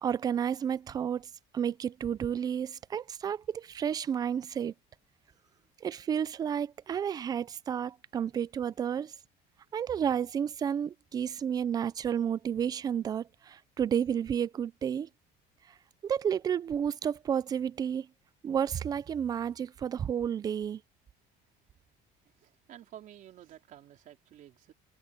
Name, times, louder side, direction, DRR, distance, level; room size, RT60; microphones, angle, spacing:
voice 1, 0.0-4.7 5.8-9.1 9.7-15.1 16.0-18.1 18.4-20.8, right 8 dB, 20° right, 0.3 m, -31 dB
voice 2, 22.2-24.7, right 11 dB, 45° right, 4.0 m, -52 dB
cardioid pair, 175°, 19 cm